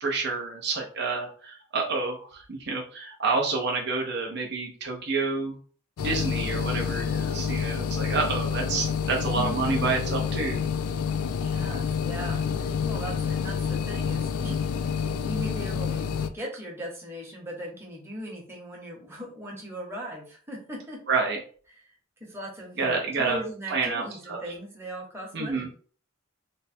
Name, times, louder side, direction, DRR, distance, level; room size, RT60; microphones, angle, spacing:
voice 1, 0.0-5.6 6.0-10.6 21.1-21.4 22.8-23.4 23.7-24.4 25.3-25.7, right 4 dB, 50° right, 0 dB, 0.7 m, -28 dB
sound 1, 6.0-16.3, left 6 dB, 90° left, 0.4 m, -28 dB
voice 2, 9.3-9.9 11.3-21.0 22.2-25.7, equal, 10° right, -3 dB, 1.0 m, -39 dB
3.2 x 2.2 x 4.2 m, 0.44 s
head